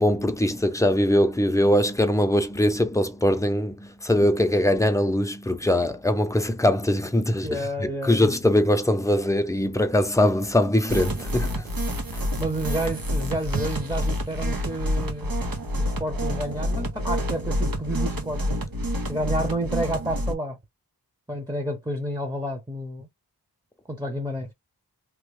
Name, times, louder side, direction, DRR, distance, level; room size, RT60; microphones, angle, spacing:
voice 1, 0.0-11.7 12.1-12.2, left 1 dB, 10° left, 0.7 m, -22 dB
voice 2, 7.4-8.4 12.4-15.3 15.8-18.6 19.1-20.6 21.3-23.1 23.9-24.5, right 1 dB, 10° right, 1.0 m, -30 dB
sound 1, 10.9-20.3, equal, 65° right, 1.1 m, -28 dB
3.0 x 2.3 x 3.3 m
wide cardioid pair, 45°, 38 cm